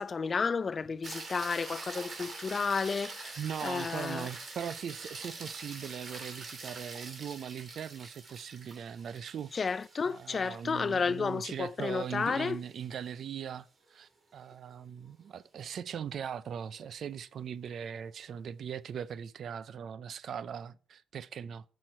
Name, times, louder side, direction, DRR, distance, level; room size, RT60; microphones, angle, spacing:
voice 1, 0.0-4.3 9.5-12.6, left 5 dB, 40° left, 0.3 m, -32 dB
sound 1, 1.0-13.4 17.9-18.0, right 3 dB, 45° right, 2.4 m, -45 dB
voice 2, 3.4-9.5 10.0-21.6, right 8 dB, 60° right, 0.4 m, -40 dB
8.7 x 6.3 x 4.4 m
cardioid pair, 90°, 0 cm